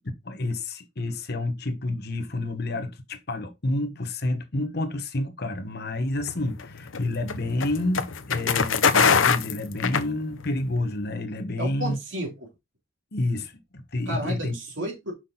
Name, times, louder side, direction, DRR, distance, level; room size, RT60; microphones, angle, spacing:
voice 1, 0.3-12.0 13.1-14.6, left 2 dB, 55° left, 1.1 m, -29 dB
sound 1, 6.2-10.6, left 6 dB, 85° left, 0.8 m, -23 dB
voice 2, 11.6-12.5 14.1-15.1, equal, 75° right, 3.1 m, -32 dB
6.1 x 6.0 x 3.9 m
head